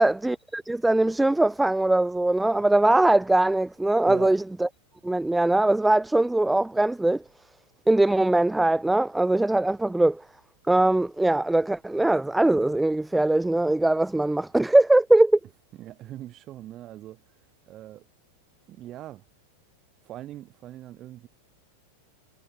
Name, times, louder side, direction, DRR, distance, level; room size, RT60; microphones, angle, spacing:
voice 1, 0.0-4.7 5.0-7.2 7.9-10.2 10.7-15.4, right 2 dB, 5° right, 0.3 m, -21 dB
voice 2, 4.0-4.4 15.8-17.4 17.7-18.1 18.7-19.2 20.0-21.3, right 13 dB, 35° right, 3.3 m, -41 dB
figure-of-eight pair, 90°, 0 cm